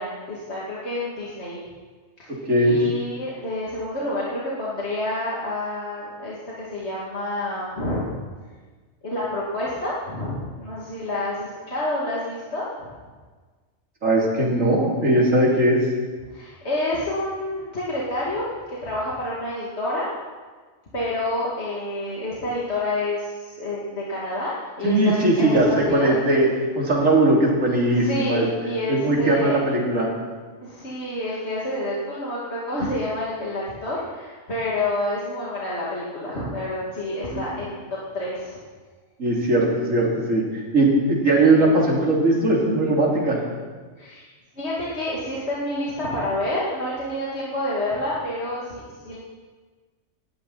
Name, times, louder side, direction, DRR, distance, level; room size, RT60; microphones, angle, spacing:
voice 1, 0.0-1.6 2.2-2.3 2.6-8.1 9.0-12.9 16.3-20.1 20.9-26.2 27.9-29.7 30.6-37.8 38.1-38.6 44.0-44.2 44.6-49.2, left 1 dB, 50° left, -7 dB, 2.8 m, -28 dB
voice 2, 2.5-2.9 14.0-15.8 24.8-26.5 26.8-28.5 28.9-30.1 37.3-37.4 39.2-43.4, right 1 dB, 65° right, -3 dB, 3.6 m, -19 dB
18.5 x 13.5 x 4.3 m, 1.4 s
omnidirectional pair, 1.4 m